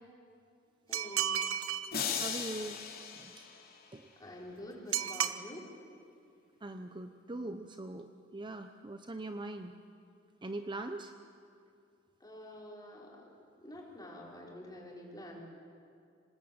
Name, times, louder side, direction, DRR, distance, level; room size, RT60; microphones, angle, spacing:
voice 1, 0.9-1.5 4.2-5.7 12.2-13.3 13.6-15.4, left 1 dB, 20° left, -2 dB, 5.0 m, -47 dB
sound 1, 0.9-1.9 4.9-5.4, right 9 dB, 75° right, 1.0 m, -32 dB
sound 2, 1.9-4.2, left 6 dB, 50° left, 2.8 m, -38 dB
voice 2, 2.2-3.5 3.9-4.1 6.6-9.8 10.4-11.1, right 2 dB, 25° right, 7 dB, 0.8 m, -42 dB
26.0 x 20.0 x 8.8 m, 2.4 s
head